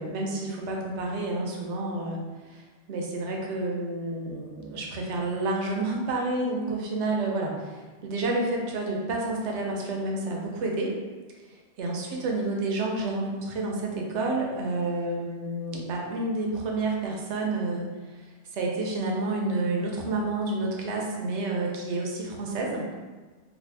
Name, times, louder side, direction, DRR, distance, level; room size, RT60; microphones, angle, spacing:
voice 1, 0.0-10.9 11.5-22.8, right 2 dB, 85° right, -1 dB, 0.9 m, -30 dB
2.6 x 2.5 x 3.2 m, 1.4 s
omnidirectional pair, 1.1 m